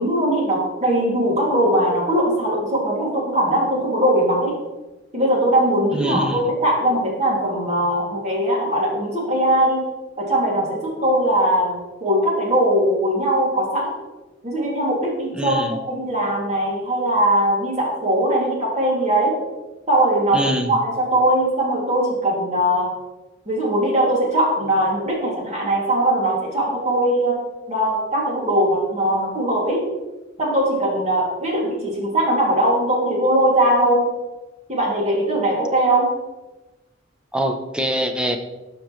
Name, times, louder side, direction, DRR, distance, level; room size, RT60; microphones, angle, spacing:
voice 1, 0.0-4.5 5.1-9.8 10.2-11.7 12.0-13.9 14.4-19.4 19.9-20.4 20.7-22.9 23.5-27.4 27.7-29.8 30.4-34.0 34.7-36.1, right 1 dB, 35° right, -3 dB, 2.4 m, -20 dB
voice 2, 5.9-6.4 15.3-15.8 20.3-20.8 37.3-38.4, equal, 5° right, 6 dB, 0.6 m, -24 dB
12.0 x 5.2 x 3.1 m, 1.1 s
head